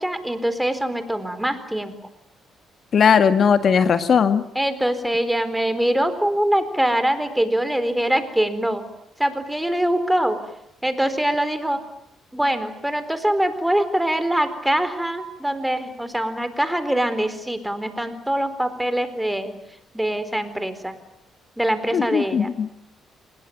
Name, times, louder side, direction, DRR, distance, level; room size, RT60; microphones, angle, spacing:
voice 1, 0.0-1.9 4.5-8.8 9.2-10.4 10.8-11.8 12.3-19.5 19.9-21.0 21.6-22.5, right 1 dB, 5° right, 11 dB, 4.1 m, -23 dB
voice 2, 2.9-4.4 21.9-22.7, left 6 dB, 55° left, 10 dB, 1.7 m, -18 dB
28.5 x 20.5 x 9.1 m, 0.77 s
cardioid pair, 90°, 0 cm